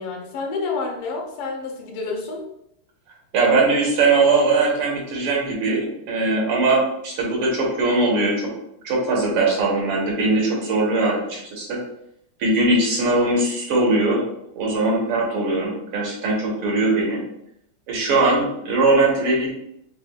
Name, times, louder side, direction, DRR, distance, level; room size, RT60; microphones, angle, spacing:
voice 1, 0.0-2.4, left 4 dB, 85° left, 1 dB, 1.7 m, -29 dB
voice 2, 3.3-8.5 8.8-11.8 12.4-14.2 14.6-17.2 17.9-19.5, right 2 dB, 80° right, -2 dB, 2.0 m, -20 dB
6.5 x 2.3 x 2.3 m, 0.77 s
omnidirectional pair, 2.4 m